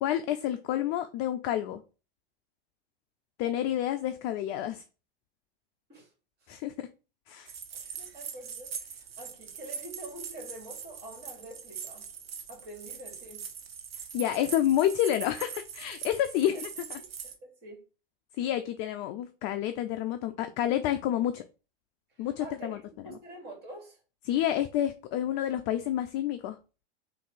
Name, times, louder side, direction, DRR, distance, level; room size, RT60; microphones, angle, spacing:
voice 1, 0.0-1.8 3.4-4.8 6.5-6.7 7.3-7.5 14.1-17.0 18.4-21.4 22.2-22.8 24.3-26.6, left 11 dB, 40° left, 0.4 m, -29 dB
sound 1, 7.5-17.3, right 7 dB, 85° right, 0.8 m, -42 dB
voice 2, 7.7-12.1 12.5-13.4 16.4-16.8 17.2-17.3 17.6-17.8 22.1-22.8 23.0-24.0, right 1 dB, 35° right, 2.3 m, -46 dB
3.6 x 2.7 x 3.9 m
hypercardioid pair, 95°, 29 cm